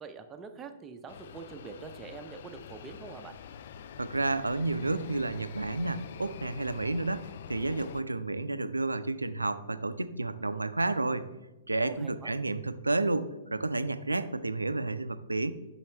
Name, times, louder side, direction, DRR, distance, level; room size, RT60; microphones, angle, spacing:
voice 1, 0.0-3.4 11.8-12.4, right 5 dB, 20° right, 6 dB, 0.6 m, -45 dB
sound 1, 1.1-8.0, left 8 dB, 60° left, 0.3 m, -46 dB
voice 2, 4.0-11.3 11.7-15.5, right 2 dB, 90° right, 13 dB, 0.3 m, -31 dB
6.1 x 5.5 x 3.3 m, 1.1 s
figure-of-eight pair, 110°, 0 cm